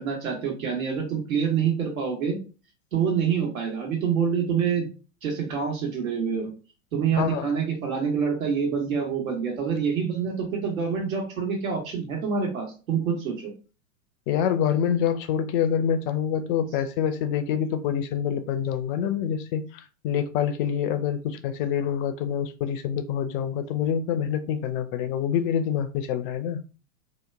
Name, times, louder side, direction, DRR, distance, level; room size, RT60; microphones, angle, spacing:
voice 1, 0.0-2.4 2.9-4.9 5.2-6.5 6.9-13.5, right 6 dB, 75° right, 1.5 m, -26 dB
voice 2, 7.2-7.5 14.3-26.6, left 8 dB, 40° left, 0.4 m, -26 dB
2.9 x 2.2 x 3.3 m
hypercardioid pair, 100°, 41 cm